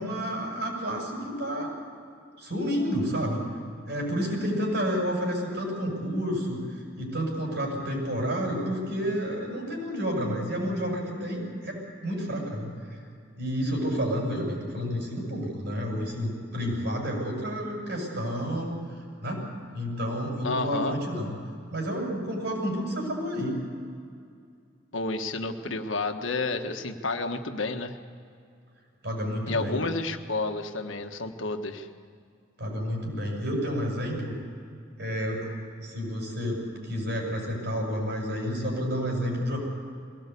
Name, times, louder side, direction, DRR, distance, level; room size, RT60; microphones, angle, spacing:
voice 1, 0.0-1.7 2.4-3.4 3.9-13.0 13.4-18.7 19.2-19.5 19.7-21.4 21.7-23.6 29.0-29.8 32.6-34.3 35.0-35.5 35.8-39.6, equal, 60° right, 0 dB, 7.5 m, -30 dB
voice 2, 20.4-20.9 24.9-28.0 29.5-31.9, left 3 dB, 90° left, 6 dB, 1.5 m, -30 dB
22.0 x 18.0 x 8.4 m, 2.4 s
head